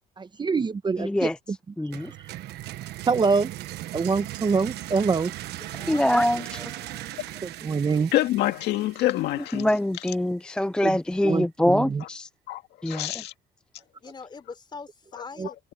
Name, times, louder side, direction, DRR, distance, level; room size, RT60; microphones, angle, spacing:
voice 1, 0.2-1.3 3.1-3.5 3.9-5.3 7.6-8.1 10.8-11.0 11.2-12.0 15.4-15.5, right 4 dB, 25° right, 1.0 m, -25 dB
voice 2, 1.0-1.4 1.8-2.1 5.9-7.0 9.5-12.3 12.8-13.2, left 1 dB, 5° left, 0.5 m, -24 dB
sound 1, 1.9-9.7, right 15 dB, 80° right, 1.3 m, -38 dB
voice 3, 5.6-6.0 6.3-6.5 14.0-15.6, left 4 dB, 25° left, 3.9 m, -42 dB
voice 4, 8.1-9.7 12.5-13.3 15.4-15.5, left 15 dB, 85° left, 1.9 m, -26 dB
cardioid pair, 110°, 17 cm